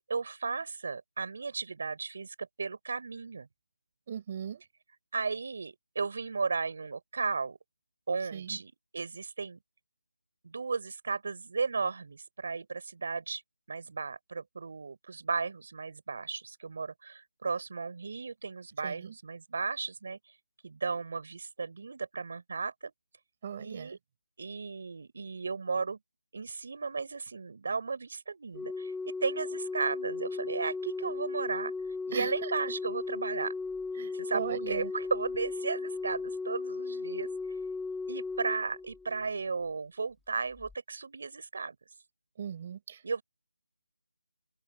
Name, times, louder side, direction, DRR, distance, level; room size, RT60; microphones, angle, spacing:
voice 1, 0.0-3.5 5.1-7.6 8.1-9.6 10.4-13.4 13.7-20.2 20.6-22.9 23.6-24.0 24.4-26.0 26.3-31.7 32.1-33.5 34.1-37.3 38.1-41.8 43.0-43.2, right 4 dB, 50° right, 4.7 m, -35 dB
voice 2, 4.1-4.6 8.3-8.6 18.8-19.1 23.4-24.0 32.1-32.5 34.0-34.9 42.4-43.2, right 8 dB, 25° right, 5.4 m, -39 dB
Organ, 28.5-39.4 40.6-40.7, left 3 dB, 5° left, 2.1 m, -36 dB
open air
figure-of-eight pair, 170°, 0 cm